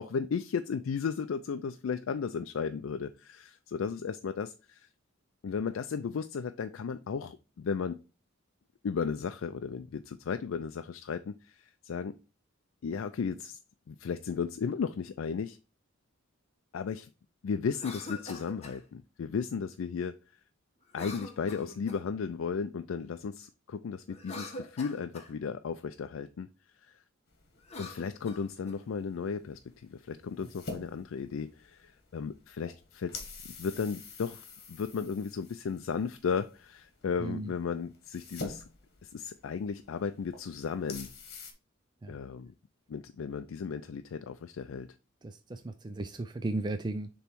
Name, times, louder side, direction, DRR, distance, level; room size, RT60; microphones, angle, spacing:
voice 1, 0.0-4.9 5.4-8.0 8.8-12.1 12.8-13.6 13.9-15.6 16.7-17.1 17.4-20.2 20.9-26.5 26.8-26.9 27.8-38.7 39.0-41.1 42.1-42.5 42.9-44.9, left 6 dB, 75° left, 0.4 m, -35 dB
Cough, 17.7-18.8 20.9-22.1 24.1-25.3 27.6-28.8, left 2 dB, 30° left, 1.1 m, -44 dB
sound 1, 27.3-41.5, left 3 dB, 50° left, 1.5 m, -48 dB
voice 2, 37.2-37.5 42.0-42.2 45.2-47.1, right 2 dB, 20° right, 0.4 m, -35 dB
6.7 x 3.1 x 4.5 m
head